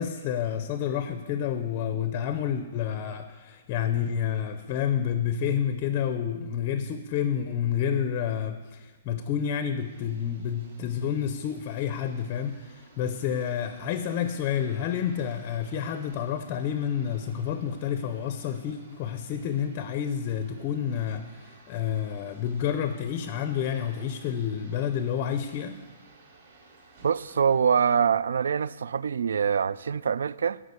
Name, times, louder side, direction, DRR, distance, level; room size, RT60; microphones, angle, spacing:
voice 1, 0.0-25.8, left 8 dB, 25° left, 0.5 m, -29 dB
sound 1, 9.8-27.6, right 3 dB, 50° right, 2.8 m, -55 dB
voice 2, 27.0-30.6, right 7 dB, 90° right, 0.3 m, -24 dB
11.5 x 4.9 x 8.1 m
hypercardioid pair, 175°, 0 cm